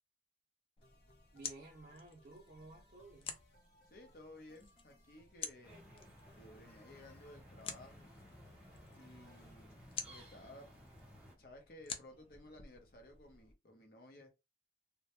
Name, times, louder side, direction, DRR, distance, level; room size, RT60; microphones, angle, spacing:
sound 1, 0.8-9.5, left 1 dB, 70° left, 1.0 m, -69 dB
sound 2, 0.8-13.5, left 6 dB, 30° left, 0.3 m, -51 dB
voice 1, 1.3-3.4, right 2 dB, 50° right, 0.5 m, -55 dB
voice 2, 3.9-5.9 6.3-8.1 8.9-10.7 11.4-14.3, left 1 dB, 55° left, 0.7 m, -57 dB
sound 3, 5.6-11.3, equal, 5° right, 0.7 m, -58 dB
2.2 x 2.1 x 2.8 m
head